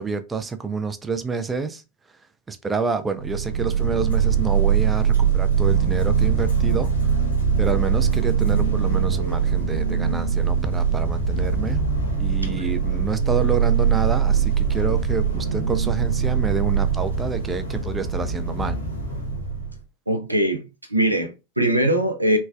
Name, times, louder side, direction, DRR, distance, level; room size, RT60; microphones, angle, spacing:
voice 1, 0.0-1.8 2.5-7.1 7.6-11.8 12.2-18.8, right 5 dB, 15° right, 0.3 m, -28 dB
sound 1, 3.2-19.8, right 7 dB, 90° left, 1.0 m, -22 dB
voice 2, 12.4-12.7 20.1-22.4, right 1 dB, 85° right, 0.4 m, -22 dB
3.2 x 2.1 x 2.3 m
figure-of-eight pair, 90°, 0 cm